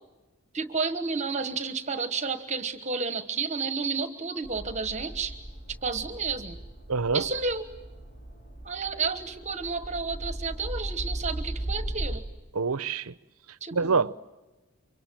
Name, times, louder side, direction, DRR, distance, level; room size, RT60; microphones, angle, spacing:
voice 1, 0.5-5.4 5.8-6.6 7.1-7.6 8.6-12.3 13.6-14.1, right 4 dB, 30° right, 1.2 m, -31 dB
sound 1, 4.4-12.2, right 1 dB, 45° left, 4.6 m, -37 dB
voice 2, 6.9-7.2 12.5-13.1 13.7-14.1, right 4 dB, 75° right, 0.8 m, -25 dB
29.0 x 24.5 x 7.6 m
head